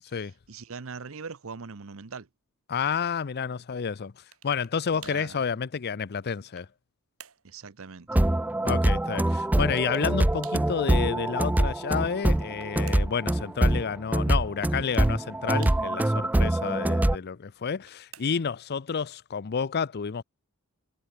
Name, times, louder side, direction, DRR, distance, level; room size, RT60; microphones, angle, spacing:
voice 1, 0.1-2.3 4.9-5.5 7.4-8.2, right 5 dB, 70° right, 0.8 m, -41 dB
voice 2, 2.7-4.1 4.4-6.7 8.6-20.2, left 6 dB, 50° left, 0.5 m, -30 dB
sound 1, 4.3-4.8 5.0-5.3 5.9-6.8 7.2-7.5 9.6-10.1 10.4-10.7 12.1-13.2 14.6-15.2 15.6-16.2 17.6-18.6, right 11 dB, 90° right, 3.3 m, -50 dB
sound 2, 8.1-17.2, right 1 dB, 10° right, 0.3 m, -24 dB
head